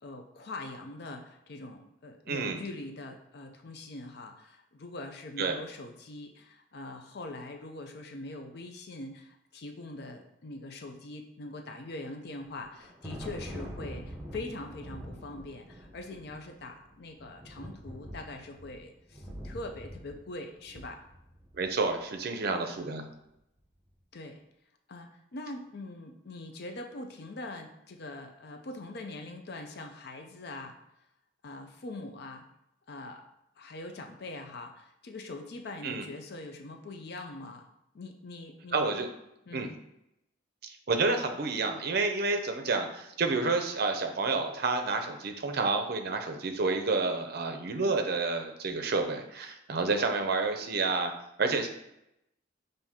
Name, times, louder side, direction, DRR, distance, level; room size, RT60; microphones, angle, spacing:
voice 1, 0.0-21.0 24.1-24.4 24.9-30.8 31.4-32.4 32.9-33.2 33.6-37.7 37.9-39.1 39.5-39.8, left 2 dB, 55° left, 5 dB, 0.5 m, -43 dB
voice 2, 2.3-2.6 5.4-5.6 21.6-23.0 35.8-36.0 38.7-39.1 39.5-39.7 40.9-51.1 51.4-51.7, right 3 dB, 50° right, 5 dB, 0.5 m, -29 dB
Thunder, 12.5-21.9, equal, 5° right, 0.7 m, -45 dB
5.6 x 2.7 x 3.5 m, 0.83 s
head